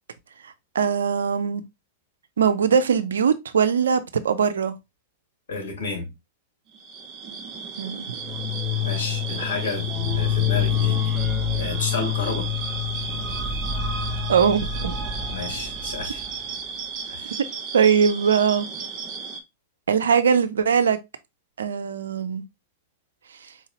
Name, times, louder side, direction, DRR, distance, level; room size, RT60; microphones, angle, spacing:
voice 1, 0.7-1.6 2.4-4.7 7.8-8.1 14.3-15.0 17.7-18.7 19.9-21.0 21.6-22.4, right 6 dB, 75° right, 0.5 m, -21 dB
voice 2, 5.5-6.1 8.8-11.0 11.6-12.5 15.3-16.2 17.1-17.4, left 3 dB, 70° left, 1.9 m, -31 dB
sound 1, 6.7-19.4, right 5 dB, 40° right, 0.7 m, -34 dB
sound 2, 8.2-16.5, left 8 dB, 15° right, 1.0 m, -27 dB
4.6 x 2.8 x 2.8 m
hypercardioid pair, 100°, 0 cm